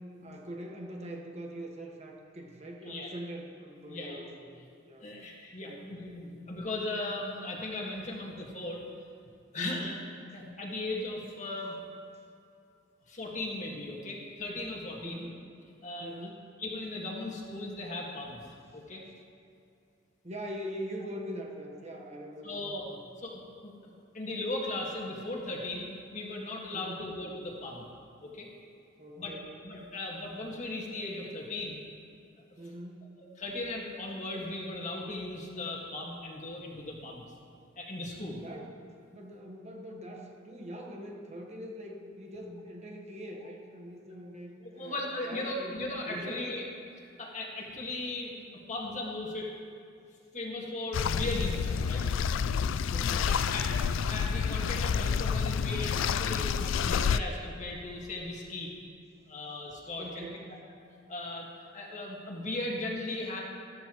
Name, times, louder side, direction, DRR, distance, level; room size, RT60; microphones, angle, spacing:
voice 1, 0.2-5.1 5.6-5.9 6.2-6.4 9.6-10.0 15.0-15.4 16.0-16.5 20.2-22.6 22.9-23.1 26.7-27.1 29.0-29.5 32.6-33.2 38.3-38.8 39.1-45.0 45.2-45.8 46.1-46.4 52.9-53.4 60.0-60.5, equal, 35° right, 1 dB, 1.3 m, -43 dB
voice 2, 3.9-4.2 5.0-8.8 9.5-9.9 10.3-11.8 13.1-15.3 15.8-16.2 16.6-18.4 18.7-19.0 22.4-22.8 23.2-23.7 24.1-27.9 28.2-28.5 29.2-29.3 29.6-31.8 33.4-37.2 37.7-38.4 44.8-46.6 47.0-49.5 50.3-52.1 53.3-58.7 59.3-60.3 61.1-61.5 61.7-63.4, left 2 dB, 40° left, -2 dB, 1.8 m, -37 dB
sound 1, 50.9-57.2, left 6 dB, 70° left, 0.3 m, -29 dB
14.0 x 14.0 x 3.1 m, 2.6 s
head